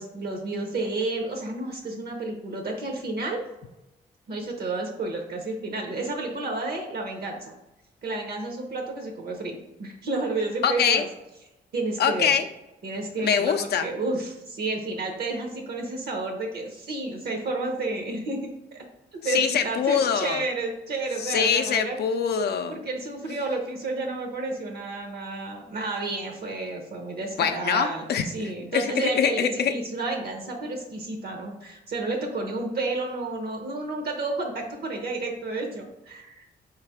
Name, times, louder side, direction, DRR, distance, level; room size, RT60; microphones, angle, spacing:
voice 1, 0.0-3.4 4.3-7.5 8.0-11.1 11.7-12.4 12.8-18.8 19.1-22.0 22.7-36.5, right 2 dB, 60° right, 2 dB, 0.8 m, -31 dB
voice 2, 10.6-11.0 12.0-12.5 13.2-13.9 19.2-20.4 21.2-22.8 27.4-29.7, left 7 dB, 65° left, 7 dB, 0.4 m, -24 dB
4.7 x 3.2 x 3.5 m, 0.95 s
cardioid pair, 135°, 18 cm